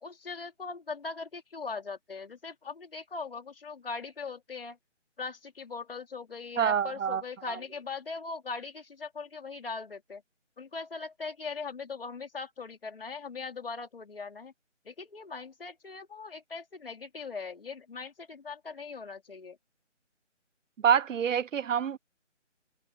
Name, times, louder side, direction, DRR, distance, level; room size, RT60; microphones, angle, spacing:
voice 1, 0.0-4.8 5.2-10.2 10.6-14.5 14.8-19.6, left 4 dB, 50° left, 3.1 m, -40 dB
voice 2, 6.6-7.2 20.8-22.0, right 8 dB, 85° right, 0.5 m, -26 dB
figure-of-eight pair, 160°, 37 cm